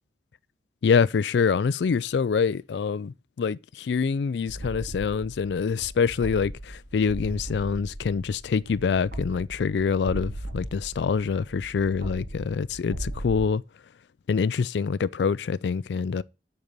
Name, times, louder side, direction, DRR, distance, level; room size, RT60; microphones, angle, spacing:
voice 1, 0.8-13.6 14.3-16.2, left 5 dB, 80° left, 0.4 m, -25 dB
sound 1, 4.5-13.5, right 1 dB, 70° right, 2.6 m, -38 dB
8.0 x 5.3 x 6.7 m
head